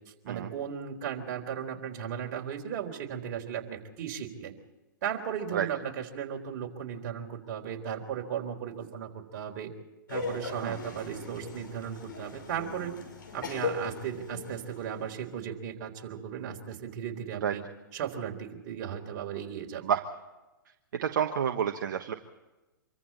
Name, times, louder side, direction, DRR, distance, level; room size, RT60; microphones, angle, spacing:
voice 1, 0.2-4.5 5.0-9.7 10.1-12.9 13.3-17.6 17.9-19.8, right 8 dB, 45° right, 2 dB, 3.9 m, -36 dB
Laughter, 10.1-15.2, left 4 dB, 75° left, 6.5 m, -38 dB
voice 2, 21.0-22.1, right 8 dB, 65° right, 5 dB, 1.3 m, -29 dB
26.0 x 24.5 x 4.3 m, 1.1 s
hypercardioid pair, 120°, 11 cm